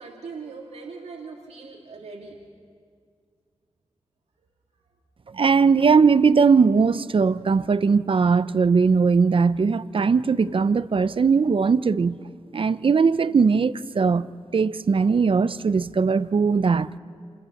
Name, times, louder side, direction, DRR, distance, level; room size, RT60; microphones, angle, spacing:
voice 1, 0.0-2.4, right 4 dB, 80° right, 2.5 m, -40 dB
voice 2, 5.3-12.2 12.5-17.0, right 5 dB, 55° right, 0.7 m, -20 dB
29.5 x 28.0 x 7.2 m
cardioid pair, 70°, 11 cm